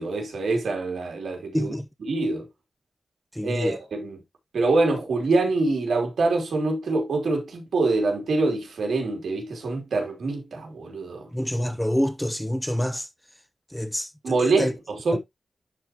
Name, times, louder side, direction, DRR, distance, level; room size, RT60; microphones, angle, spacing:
voice 1, 0.0-1.7 2.1-2.5 3.4-4.2 4.5-11.3 14.2-15.2, right 3 dB, 80° right, 3.1 m, -25 dB
voice 2, 1.5-1.9 3.3-3.8 11.3-13.1 13.7-14.1 14.4-14.7 15.1-15.2, equal, 5° left, 0.9 m, -26 dB
11.5 x 4.4 x 2.9 m
cardioid pair, 70°, 0 cm